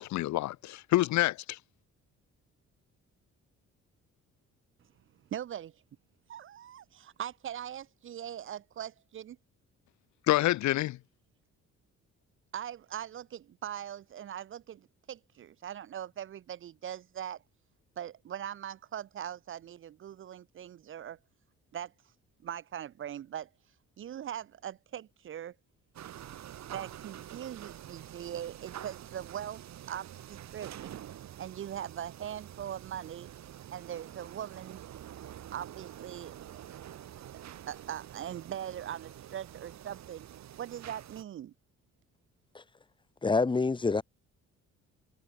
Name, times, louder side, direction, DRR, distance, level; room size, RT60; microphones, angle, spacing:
voice 1, 0.0-1.6 10.3-11.0, left 16 dB, 70° left, 0.6 m, -27 dB
voice 2, 5.3-5.7 6.3-9.4 12.5-17.4 18.0-21.2 21.7-21.9 22.4-23.5 24.0-25.5 26.7-29.6 29.9-31.0 31.4-33.3 33.7-34.8 35.5-36.8 37.3-40.3 40.6-41.5, right 10 dB, 45° right, 0.4 m, -41 dB
sound 1, 25.9-41.2, right 11 dB, 65° right, 1.6 m, -47 dB
voice 3, 43.2-44.0, left 4 dB, 15° left, 0.7 m, -26 dB
cardioid pair, 90°, 30 cm